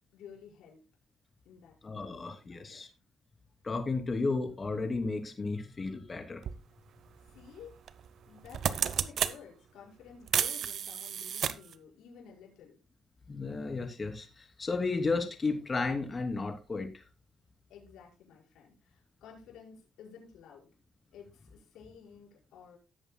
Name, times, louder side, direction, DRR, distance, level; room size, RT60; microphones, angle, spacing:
voice 1, 0.1-0.8 1.5-2.8 7.3-7.8 8.3-12.8 17.7-20.7 21.1-22.8, left 7 dB, 85° left, -3 dB, 5.4 m, -53 dB
voice 2, 1.8-2.9 3.6-6.4 13.3-17.0, left 3 dB, 30° left, 4 dB, 3.0 m, -33 dB
sound 1, 6.4-6.6 7.9-8.1 8.4-9.4 10.3-11.7, right 9 dB, 65° right, 0.8 m, -31 dB
18.0 x 7.9 x 2.3 m, 0.29 s
cardioid pair, 90°, 0 cm